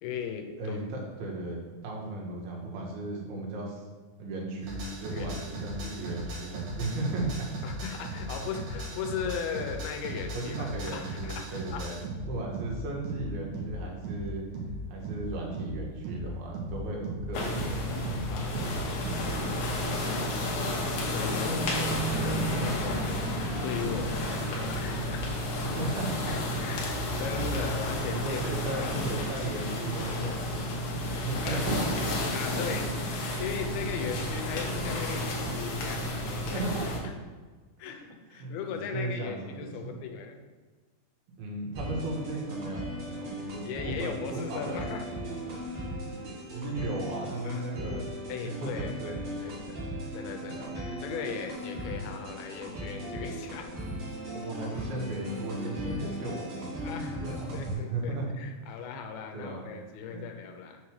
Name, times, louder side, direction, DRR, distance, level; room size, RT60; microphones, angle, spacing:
voice 1, 0.0-0.8 5.1-5.4 7.6-11.9 18.3-18.8 21.1-23.3 23.6-25.2 26.2-28.9 30.9-31.6 32.3-32.9 33.4-36.6 37.8-38.0 38.3-40.4 43.4-45.0 47.4-47.6 48.3-49.9 50.1-53.7 56.8-60.8, left 7 dB, 90° left, 4 dB, 2.6 m, -38 dB
voice 2, 0.6-3.8 4.2-7.5 8.4-8.5 10.1-14.4 14.9-17.9 18.5-19.0 19.3-20.3 20.5-20.8 25.6-26.3 27.4-27.5 28.1-31.7 34.0-34.1 36.5-37.1 37.8-40.0 41.4-44.9 45.4-45.6 46.0-48.2 48.4-49.6 50.4-50.7 54.3-58.3 59.3-59.7 60.1-60.3, right 2 dB, 80° right, -2 dB, 3.1 m, -36 dB
sound 1, 4.6-19.3, right 1 dB, 65° right, 2.3 m, -37 dB
sound 2, 17.3-37.0, left 1 dB, 70° left, 2.0 m, -31 dB
sound 3, 41.7-57.7, equal, 45° right, 1.8 m, -38 dB
6.5 x 3.1 x 5.8 m, 1.3 s
omnidirectional pair, 4.3 m